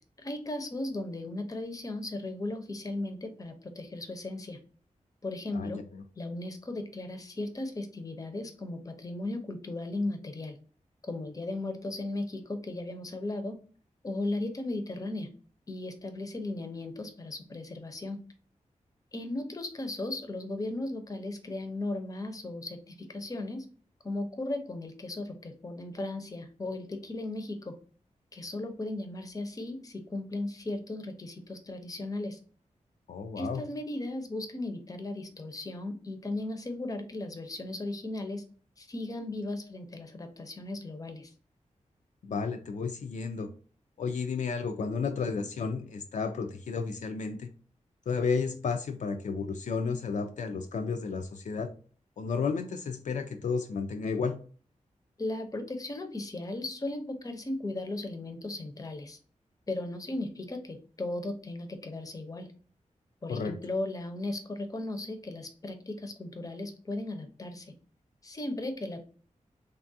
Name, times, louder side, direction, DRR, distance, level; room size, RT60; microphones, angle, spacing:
voice 1, 0.2-4.6 5.2-5.8 6.2-10.6 11.0-13.6 14.0-15.3 15.7-18.2 19.1-23.7 24.0-27.7 28.3-32.4 33.4-38.4 38.8-41.3 55.2-59.2 59.7-62.5 63.2-67.7 68.2-69.0, left 2 dB, 25° left, 6 dB, 0.6 m, -36 dB
voice 2, 5.5-6.0 33.1-33.6 42.2-43.5 44.0-47.5 48.1-51.7 52.2-54.4 63.3-63.6, left 5 dB, 70° left, 6 dB, 0.4 m, -32 dB
3.3 x 2.3 x 2.6 m, 0.41 s
wide cardioid pair, 120°, 13 cm